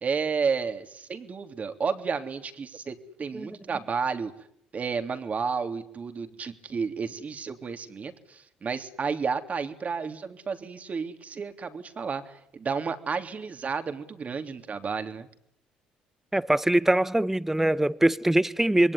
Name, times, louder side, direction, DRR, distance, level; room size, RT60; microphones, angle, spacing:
voice 1, 0.0-4.3 4.7-15.3, right 5 dB, 40° right, 3.4 m, -31 dB
voice 2, 16.3-18.9, right 1 dB, 10° right, 1.2 m, -23 dB
27.0 x 22.5 x 9.9 m
hypercardioid pair, 60°, 4 cm